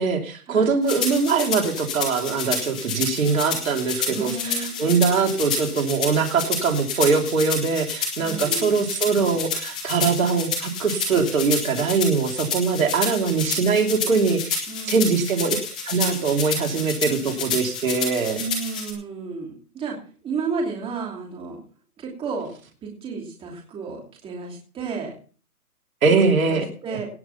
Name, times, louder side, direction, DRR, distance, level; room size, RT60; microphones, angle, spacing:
voice 1, 0.0-15.6 15.9-18.4 26.0-26.6, right 5 dB, 65° right, 3 dB, 3.1 m, -22 dB
sound 1, 0.9-18.9, left 5 dB, 5° left, 0.5 m, -29 dB
voice 2, 4.1-4.8 8.2-8.8 14.7-15.2 18.3-20.0 20.2-21.6 22.0-22.5 22.8-25.1 26.0-27.1, right 4 dB, 10° right, 0 dB, 2.8 m, -32 dB
17.5 x 6.3 x 5.8 m, 0.40 s
hypercardioid pair, 150°, 44 cm